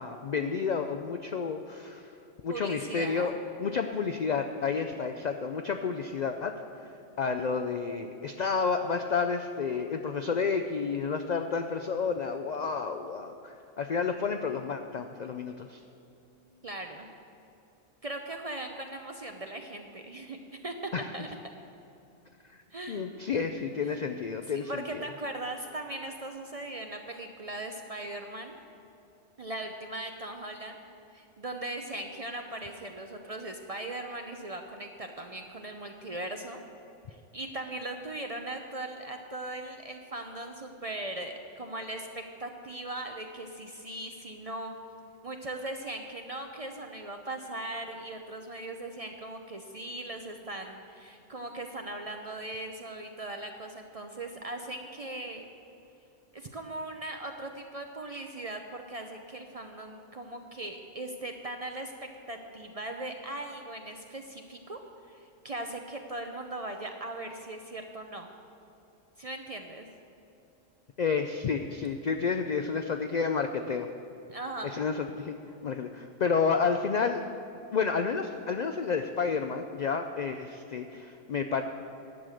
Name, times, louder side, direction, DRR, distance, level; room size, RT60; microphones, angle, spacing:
voice 1, 0.0-2.0 2.4-3.3 3.6-6.5 7.2-15.8 20.9-21.1 22.9-25.0 71.0-73.9 74.6-75.4 75.6-77.2 77.7-81.6, left 5 dB, 65° left, 6 dB, 0.4 m, -30 dB
voice 2, 2.5-3.3 16.6-17.1 18.0-21.3 22.7-23.5 23.8-24.0 24.5-28.6 29.4-30.8 31.1-36.6 37.1-44.7 45.2-55.4 56.3-61.9 62.3-68.3 69.2-69.9 74.3-74.8, right 1 dB, 40° right, 4 dB, 0.5 m, -39 dB
11.0 x 6.6 x 7.7 m, 2.9 s
omnidirectional pair, 1.3 m